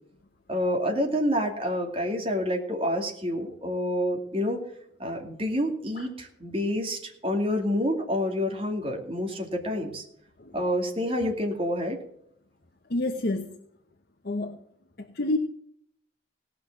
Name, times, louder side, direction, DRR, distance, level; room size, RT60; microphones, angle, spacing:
voice 1, 0.5-4.6 5.0-10.0 10.5-12.0, equal, 30° right, 2 dB, 2.4 m, -28 dB
voice 2, 12.9-13.6 14.2-14.6 15.0-15.4, left 2 dB, 55° left, 5 dB, 0.9 m, -29 dB
18.0 x 6.1 x 7.3 m, 0.70 s
head